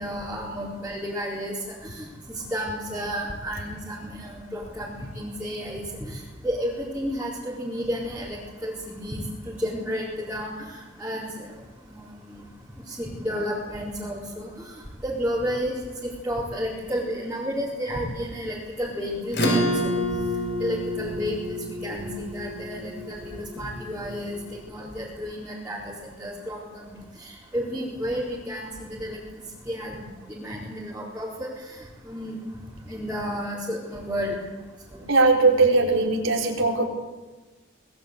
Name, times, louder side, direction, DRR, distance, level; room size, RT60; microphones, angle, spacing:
voice 1, 0.0-1.5 1.8-6.2 6.4-11.5 11.9-12.4 12.9-14.5 15.0-19.9 20.6-24.4 24.7-26.9 27.2-29.2 29.7-30.0 30.3-31.5 32.1-32.4 32.9-34.4 34.9-35.0, equal, 5° right, -8 dB, 4.3 m, -32 dB
Acoustic guitar / Strum, 19.3-24.2, equal, 55° left, 5.3 m, -28 dB
voice 2, 35.1-36.9, right 3 dB, 85° right, 0 dB, 4.1 m, -19 dB
24.0 x 20.0 x 8.3 m, 1.2 s
head